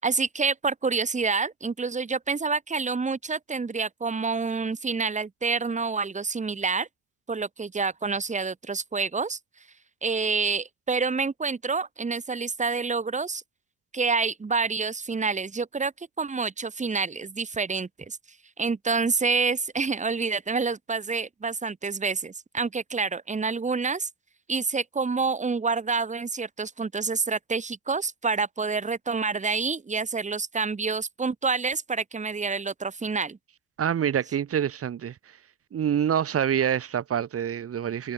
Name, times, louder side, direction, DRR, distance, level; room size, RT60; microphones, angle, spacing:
voice 1, 0.0-6.9 7.3-9.4 10.0-13.4 13.9-18.2 18.6-24.1 24.5-33.4, right 4 dB, 25° right, 7.5 m, -28 dB
voice 2, 33.8-35.1 35.7-38.1, right 9 dB, 50° right, 7.9 m, -26 dB
cardioid pair, 105°, 31 cm